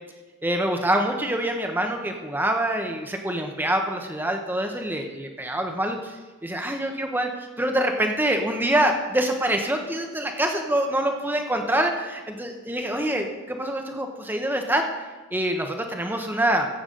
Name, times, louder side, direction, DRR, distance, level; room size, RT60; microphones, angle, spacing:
voice 1, 0.4-14.8 15.3-16.7, right 1 dB, 10° right, 4 dB, 0.8 m, -25 dB
15.0 x 8.1 x 3.8 m, 1.3 s
head